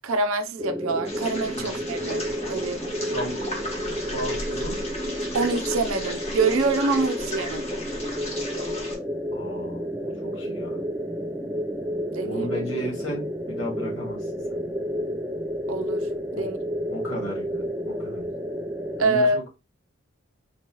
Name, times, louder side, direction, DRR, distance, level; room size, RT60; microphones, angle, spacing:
voice 1, 0.0-2.9 5.3-7.7 12.1-12.5 15.7-16.6 19.0-19.4, right 3 dB, 80° right, 0.6 m, -26 dB
sound 1, 0.6-19.0, equal, 10° right, 0.4 m, -31 dB
sound 2, 1.0-9.0, left 1 dB, 30° left, 1.0 m, -35 dB
voice 2, 4.1-4.8 9.3-10.8 12.3-14.6 16.4-16.5 16.9-18.3 19.0-19.4, equal, 70° left, 2.4 m, -34 dB
4.2 x 3.0 x 2.9 m
head